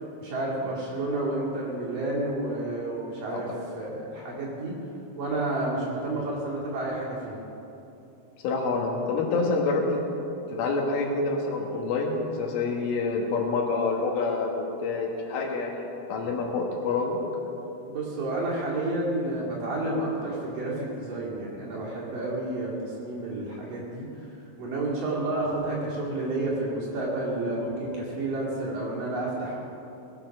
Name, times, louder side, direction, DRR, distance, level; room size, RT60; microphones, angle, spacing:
voice 1, 0.2-4.8 5.2-7.4 17.9-24.3 24.6-29.5, right 2 dB, 50° right, -5 dB, 3.5 m, -30 dB
voice 2, 8.4-9.8 10.6-17.2, left 3 dB, 75° left, 0 dB, 4.0 m, -27 dB
20.0 x 8.9 x 6.0 m, 2.9 s
omnidirectional pair, 5.8 m